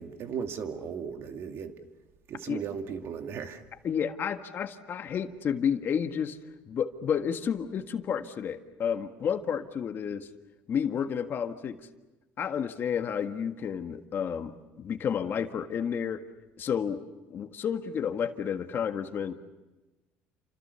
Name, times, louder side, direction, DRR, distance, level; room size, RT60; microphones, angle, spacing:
voice 1, 0.0-1.8 2.3-3.6, right 7 dB, 55° right, 2.4 m, -36 dB
voice 2, 3.8-6.4 6.7-10.3 10.7-11.8 12.4-16.2 16.6-19.3, left 7 dB, 45° left, 1.7 m, -31 dB
29.5 x 26.5 x 7.0 m
cardioid pair, 105°, 5 cm